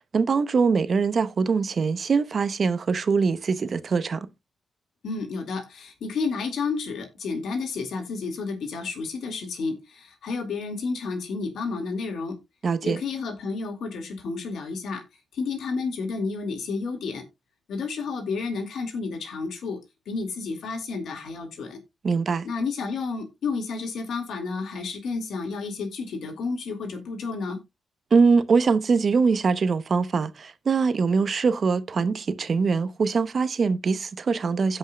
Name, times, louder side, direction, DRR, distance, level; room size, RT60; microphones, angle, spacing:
voice 1, 0.1-4.3 12.6-13.0 22.0-22.5 28.1-34.8, right 5 dB, 55° right, 0.8 m, -23 dB
voice 2, 5.0-12.4 12.8-15.0 15.3-17.2 17.7-19.8 20.1-21.8 22.4-27.6, left 4 dB, 80° left, 2.3 m, -31 dB
16.0 x 5.5 x 2.3 m
cardioid pair, 60°, 0 cm